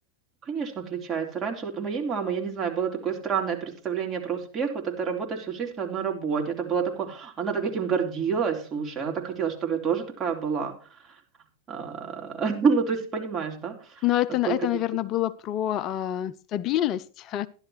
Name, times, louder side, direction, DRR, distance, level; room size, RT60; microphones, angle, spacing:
voice 1, 0.4-10.7 11.0-11.1 11.7-14.0 14.4-14.5, right 6 dB, 30° right, 3.2 m, -28 dB
voice 2, 14.0-17.5, left 13 dB, 40° left, 0.5 m, -27 dB
13.0 x 11.5 x 3.1 m
figure-of-eight pair, 90°, 0 cm